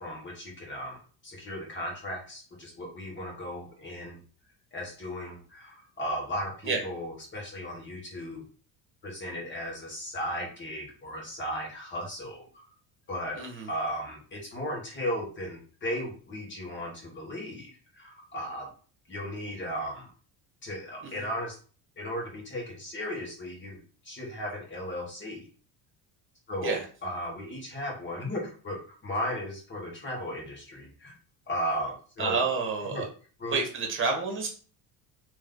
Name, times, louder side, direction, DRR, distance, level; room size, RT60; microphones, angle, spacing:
voice 1, 0.0-4.2 4.7-8.4 9.0-12.5 13.1-18.7 19.1-20.1 20.6-21.5 22.0-25.5 26.5-31.1 31.5-32.5 32.9-33.1 33.4-33.6, equal, 30° left, -2 dB, 1.7 m, -36 dB
voice 2, 13.4-13.7 21.0-21.2 26.6-26.8 32.2-33.0 33.5-34.5, right 4 dB, 30° right, 2 dB, 1.5 m, -29 dB
3.2 x 3.1 x 3.8 m, 0.40 s
cardioid pair, 120°, 41 cm